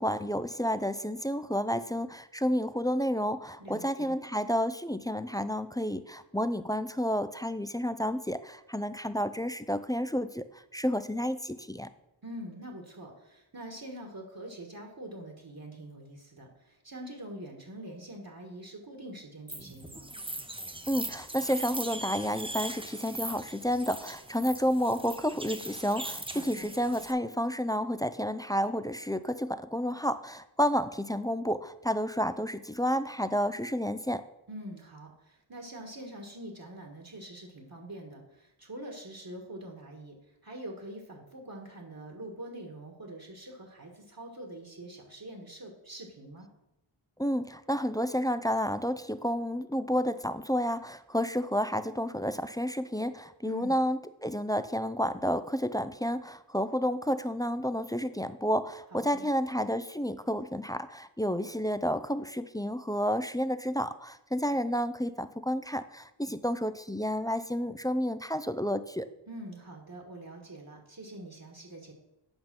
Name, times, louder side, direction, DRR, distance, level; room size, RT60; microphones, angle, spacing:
voice 1, 0.0-11.9 20.9-34.3 47.2-69.1, equal, 10° left, 12 dB, 0.4 m, -30 dB
voice 2, 3.6-4.2 12.2-20.1 26.3-26.7 34.5-40.2 40.4-46.5 53.4-53.8 58.9-59.3 69.3-71.9, right 1 dB, 45° right, 1 dB, 1.5 m, -44 dB
sound 1, 19.5-27.1, right 1 dB, 10° right, 0.8 m, -40 dB
8.7 x 5.4 x 6.0 m, 0.89 s
wide cardioid pair, 60°, 48 cm